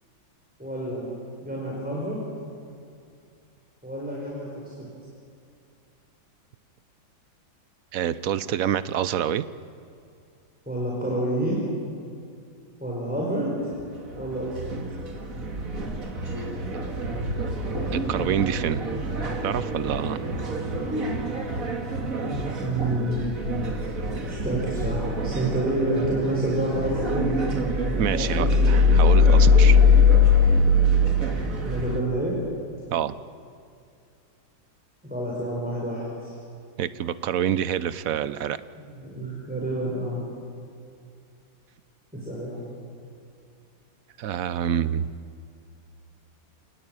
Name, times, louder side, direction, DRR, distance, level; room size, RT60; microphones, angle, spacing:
voice 1, 0.6-1.1 1.4-2.2 3.8-4.9 10.7-11.6 12.8-13.6 14.2-14.8 22.6-23.3 24.3-27.3 28.1-28.5 31.6-32.4 35.0-36.3 38.7-40.2 42.1-42.6, right 1 dB, 5° right, -4 dB, 4.9 m, -28 dB
voice 2, 7.9-9.4 16.6-16.8 17.9-18.8 19.4-20.3 28.0-29.8 32.9-33.1 36.8-38.6 44.2-45.1, right 9 dB, 60° right, 15 dB, 0.9 m, -27 dB
sound 1, 13.7-32.0, left 3 dB, 45° right, 2.5 m, -23 dB
28.0 x 19.5 x 9.0 m, 2.5 s
omnidirectional pair, 2.1 m